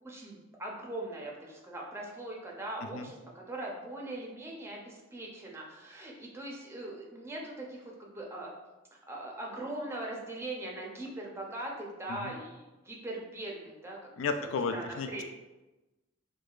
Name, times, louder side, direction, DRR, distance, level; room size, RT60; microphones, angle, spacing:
voice 1, 0.0-8.5 9.1-14.0 14.7-15.2, right 1 dB, 15° right, -2 dB, 0.5 m, -41 dB
voice 2, 14.2-15.2, left 4 dB, 85° left, 8 dB, 0.3 m, -33 dB
4.6 x 2.3 x 2.3 m, 1.1 s
head